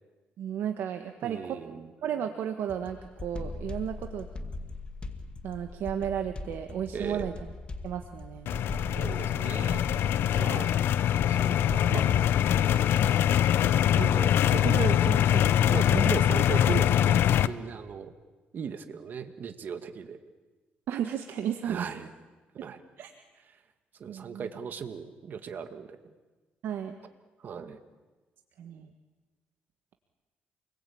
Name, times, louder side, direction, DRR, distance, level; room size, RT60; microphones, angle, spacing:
voice 1, 0.4-1.6 2.0-4.3 5.4-7.5 7.8-8.5 20.9-22.1 22.6-22.7 23.0-23.1 24.1-24.5 26.6-27.0 28.6-28.9, right 9 dB, 75° right, 6 dB, 1.6 m, -34 dB
voice 2, 1.2-1.9 6.9-7.3 9.0-9.9 10.4-10.7 11.3-12.3 13.6-17.2 17.5-18.1 18.5-20.2 21.6-22.0 22.5-22.8 24.0-26.0 27.4-27.8, right 6 dB, 55° right, 8 dB, 2.0 m, -36 dB
sound 1, 2.7-13.4, left 3 dB, 25° left, 2.1 m, -39 dB
sound 2, 8.5-17.5, left 10 dB, 75° left, 0.9 m, -23 dB
28.0 x 22.0 x 8.8 m, 1.3 s
cardioid pair, 105°, 4 cm